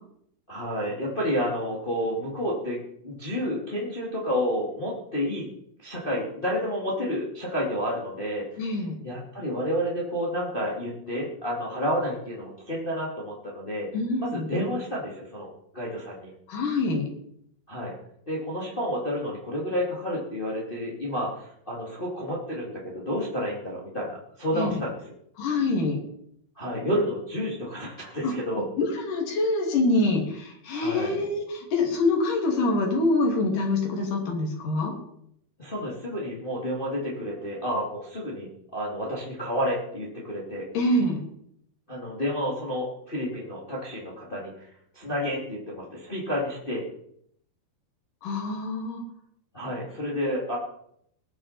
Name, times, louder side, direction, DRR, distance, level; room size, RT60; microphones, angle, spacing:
voice 1, 0.5-5.5 5.8-8.6 9.0-13.9 14.2-16.3 17.7-17.9 18.3-24.9 26.6-28.6 30.7-31.2 35.6-40.6 41.9-44.7 44.9-46.8 49.5-50.6, equal, 15° left, -4 dB, 2.4 m, -30 dB
voice 2, 8.6-9.0 13.9-14.5 16.5-17.1 24.5-24.8 25.4-26.0 28.2-28.3 28.8-34.9 40.7-41.2 48.2-49.0, left 2 dB, 60° left, 1 dB, 4.3 m, -25 dB
20.5 x 8.8 x 4.4 m, 0.71 s
omnidirectional pair, 4.2 m